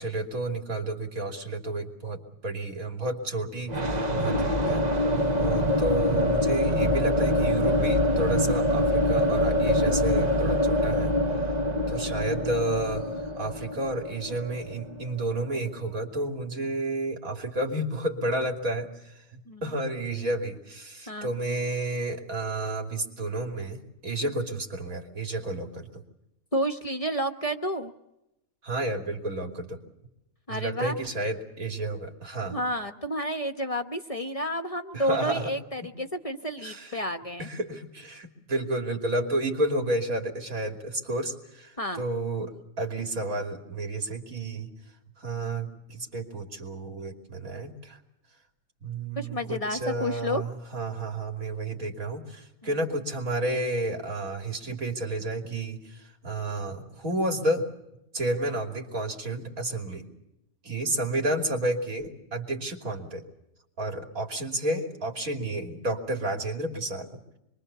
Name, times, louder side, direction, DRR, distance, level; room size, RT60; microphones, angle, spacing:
voice 1, 0.0-4.8 5.4-11.2 11.9-26.0 28.6-29.8 30.5-32.6 34.9-35.5 36.6-37.0 37.4-44.7 45.2-48.0 48.8-57.7 58.1-60.1 60.6-63.3 63.8-67.2, right 2 dB, 85° right, 3 dB, 3.4 m, -31 dB
sound 1, 3.7-15.5, left 1 dB, 30° right, 1.4 m, -25 dB
voice 2, 19.5-19.8 21.1-21.3 26.5-27.9 30.5-30.9 32.5-37.5 41.8-42.0 49.2-50.4, equal, 25° left, 7 dB, 1.2 m, -30 dB
26.0 x 23.0 x 6.9 m, 0.87 s
omnidirectional pair, 1.4 m